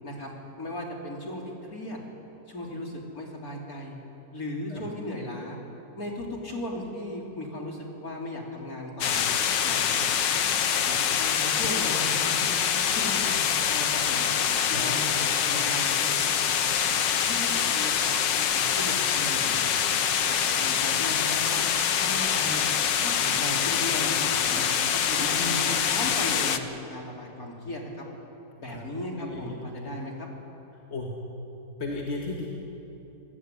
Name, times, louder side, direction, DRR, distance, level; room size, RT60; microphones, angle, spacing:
voice 1, 0.0-2.0 2.5-4.0 4.3-5.6 6.0-9.2 9.6-10.3 10.8-12.3 12.8-14.3 14.7-16.2 16.6-17.0 17.3-17.5 17.7-18.2 18.5-19.7 20.2-21.7 22.0-22.6 23.0-24.7 24.9-28.0 28.6-30.3, left 1 dB, 50° left, -1 dB, 4.4 m, -36 dB
sound 1, 9.0-26.6, left 8 dB, 80° left, 1.7 m, -25 dB
voice 2, 25.2-25.8 28.7-28.8 29.2-29.6 29.8-29.9 30.9-31.1 31.8-32.5, left 2 dB, 35° left, -1 dB, 2.4 m, -34 dB
27.5 x 18.5 x 9.6 m, 3.0 s
omnidirectional pair, 1.9 m